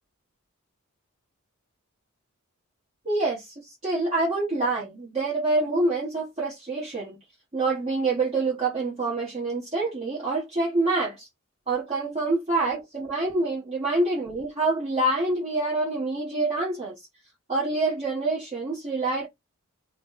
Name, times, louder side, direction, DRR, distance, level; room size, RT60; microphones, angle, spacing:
voice 1, 3.0-7.2 7.5-11.3 11.7-16.9 17.5-19.3, right 2 dB, 30° right, 1.1 m, -26 dB
3.1 x 2.1 x 3.8 m
head